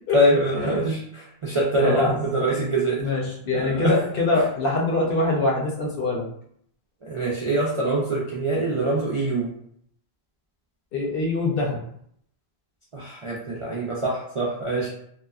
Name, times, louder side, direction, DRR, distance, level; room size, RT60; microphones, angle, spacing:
voice 1, 0.1-3.1 3.5-4.0 7.0-9.5 12.9-14.9, right 1 dB, 50° right, -6 dB, 0.4 m, -24 dB
voice 2, 3.0-6.3 10.9-11.8, left 3 dB, 60° left, -2 dB, 0.8 m, -24 dB
2.8 x 2.1 x 2.3 m, 0.67 s
omnidirectional pair, 1.1 m